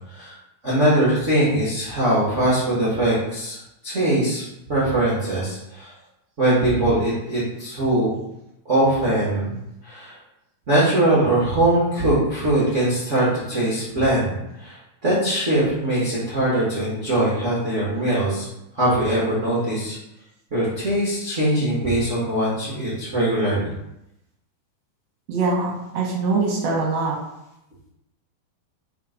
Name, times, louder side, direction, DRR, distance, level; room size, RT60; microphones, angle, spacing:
voice 1, 0.6-4.4 4.7-5.9 6.4-8.1 8.6-9.5 9.8-10.2 10.7-18.5 18.7-20.0 20.5-23.7, right 1 dB, 80° right, -8 dB, 0.6 m, -21 dB
voice 2, 25.3-27.2, right 3 dB, 65° right, -2 dB, 1.6 m, -23 dB
5.7 x 3.3 x 5.1 m, 0.87 s
omnidirectional pair, 4.2 m